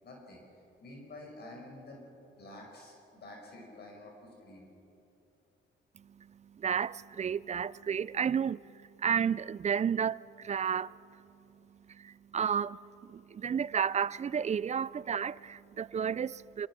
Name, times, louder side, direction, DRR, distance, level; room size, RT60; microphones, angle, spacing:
voice 1, 0.0-0.4 0.8-4.7, left 1 dB, 55° left, 5.5 m, -49 dB
voice 2, 6.0-11.2 11.9-16.7, right 7 dB, 35° right, 0.5 m, -32 dB
24.5 x 24.5 x 6.3 m
cardioid pair, 90°, 20 cm